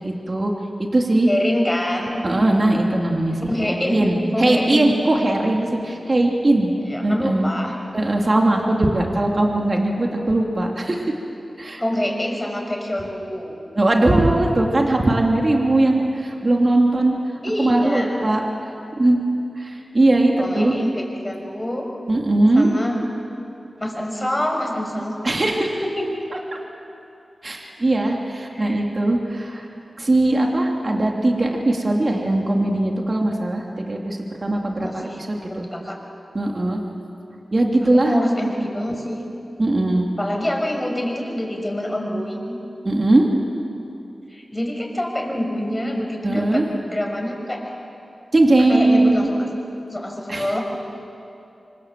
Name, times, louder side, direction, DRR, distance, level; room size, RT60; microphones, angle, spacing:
voice 1, 0.0-0.5 0.8-1.3 2.2-6.7 7.0-7.5 7.9-11.1 11.6-11.8 13.8-17.2 17.6-18.4 19.0-19.2 19.6-20.7 22.1-22.7 25.2-25.8 27.4-29.7 30.0-35.7 36.3-36.8 37.5-38.1 39.6-40.1 42.8-43.3 46.2-46.7 48.3-49.3 50.3-50.5, right 2 dB, 45° right, 0 dB, 3.0 m, -19 dB
voice 2, 1.3-2.1 3.5-4.0 4.3-4.9 6.7-7.8 10.2-10.3 11.8-13.6 17.4-18.2 20.4-21.9 22.5-23.0 23.8-25.2 25.8-26.1 28.5-28.8 34.8-36.0 37.9-39.2 40.2-42.6 44.3-47.6 48.7-49.5 49.9-50.6, left 1 dB, 20° left, 1 dB, 5.9 m, -26 dB
26.5 x 25.5 x 7.6 m, 2.8 s
cardioid pair, 55°, 0 cm